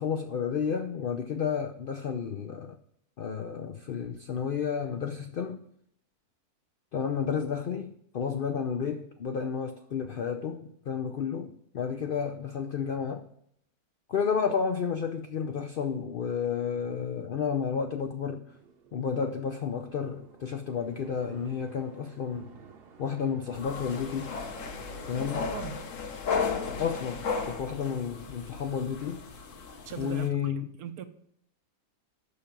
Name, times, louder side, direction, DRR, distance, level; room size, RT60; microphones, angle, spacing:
voice 1, 0.0-2.8 3.2-5.6 6.9-13.2 14.1-18.5 18.9-22.5 23.0-24.3 25.1-25.5 26.8-29.2 30.0-30.7, left 6 dB, 85° left, 0.4 m, -31 dB
sound 1, 18.5-27.3, right 5 dB, 50° right, 0.9 m, -54 dB
sound 2, 23.5-30.3, left 5 dB, 60° left, 1.2 m, -35 dB
voice 2, 29.9-31.0, right 7 dB, 75° right, 1.1 m, -40 dB
6.8 x 5.8 x 5.1 m
omnidirectional pair, 1.6 m